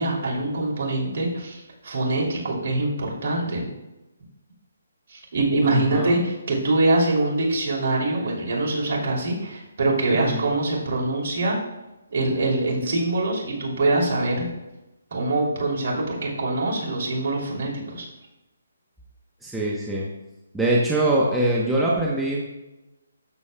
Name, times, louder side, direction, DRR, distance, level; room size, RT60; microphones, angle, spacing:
voice 1, 0.0-3.7 5.1-11.6 12.1-14.5 15.1-18.1, right 2 dB, 50° right, -3 dB, 2.9 m, -24 dB
voice 2, 5.6-6.2 10.1-10.4 19.4-20.1 20.5-22.4, right 1 dB, 5° right, -5 dB, 0.9 m, -23 dB
13.0 x 6.9 x 2.3 m, 1.0 s
hypercardioid pair, 155°, 0 cm